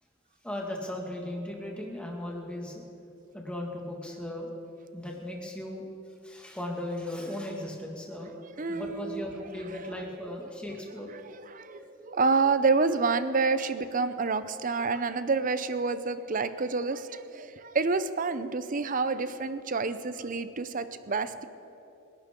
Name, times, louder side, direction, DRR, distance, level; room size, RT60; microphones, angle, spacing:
voice 1, 0.4-2.7 3.3-4.5 4.9-5.8 6.2-8.3 8.7-11.1 11.6-12.0, left 1 dB, 5° left, -1 dB, 1.9 m, -37 dB
voice 2, 8.6-9.4 9.7-9.8 11.1-21.5, right 4 dB, 40° right, 12 dB, 0.6 m, -28 dB
26.5 x 11.0 x 3.7 m, 3.0 s
head